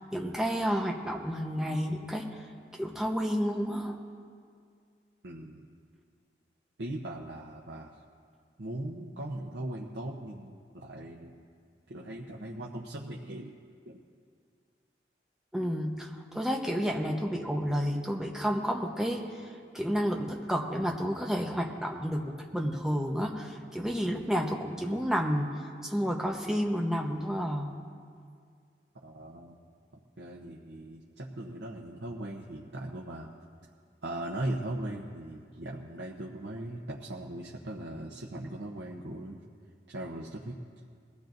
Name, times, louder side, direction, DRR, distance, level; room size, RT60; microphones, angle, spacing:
voice 1, 0.1-2.3 2.8-4.0 15.5-19.2 19.7-25.5 25.8-27.7, equal, 5° right, 0 dB, 1.0 m, -30 dB
voice 2, 5.2-5.7 6.8-8.0 8.6-11.4 11.9-13.6 13.8-14.0 29.0-29.6 30.2-33.3 34.0-39.4 39.9-40.6, right 1 dB, 90° right, -2 dB, 0.9 m, -39 dB
21.0 x 16.0 x 2.6 m, 2.2 s
head